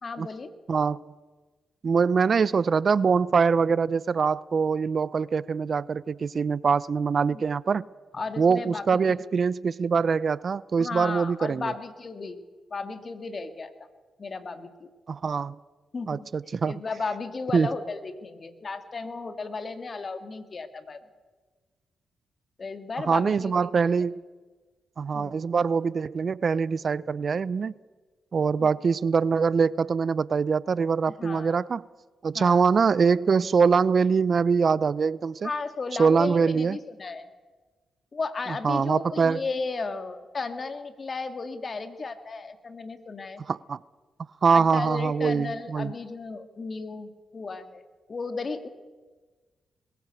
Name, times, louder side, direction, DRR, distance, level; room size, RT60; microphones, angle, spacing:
voice 1, 0.0-0.5 7.3-7.4 8.1-9.2 10.8-12.4 12.7-13.7 14.2-14.9 15.9-16.3 16.6-21.0 22.6-23.8 25.1-25.3 31.2-31.6 32.3-32.7 35.4-37.3 38.1-43.4 44.5-47.8 48.1-48.7, left 4 dB, 45° left, 2.3 m, -34 dB
voice 2, 0.7-1.0 1.8-7.9 8.4-11.7 15.1-15.6 16.1-16.7 17.5-17.7 23.1-24.2 25.0-27.7 28.3-31.8 32.2-35.5 36.0-36.8 38.6-39.4 43.5-43.8 44.4-45.9, right 5 dB, 55° right, 0.5 m, -23 dB
21.0 x 16.0 x 8.2 m
supercardioid pair, 45°, 0 cm